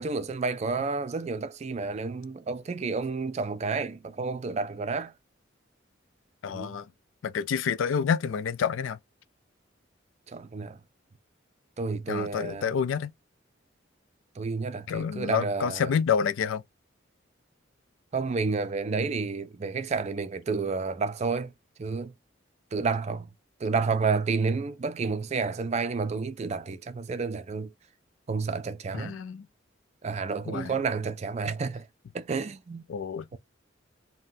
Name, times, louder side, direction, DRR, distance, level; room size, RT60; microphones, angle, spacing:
voice 1, 0.0-5.1 6.5-6.8 10.3-10.8 11.8-12.7 14.4-15.9 18.1-21.5 21.8-22.1 22.7-23.3 23.6-27.7 28.3-29.2 30.0-31.9 32.1-32.9 33.3-33.4, right 4 dB, 35° right, 0.4 m, -30 dB
voice 2, 6.4-6.9 7.2-9.0 12.1-13.1 14.9-16.6 28.9-29.5 30.5-30.7 32.9-33.2, left 7 dB, 90° left, 0.4 m, -28 dB
3.6 x 2.2 x 2.6 m
head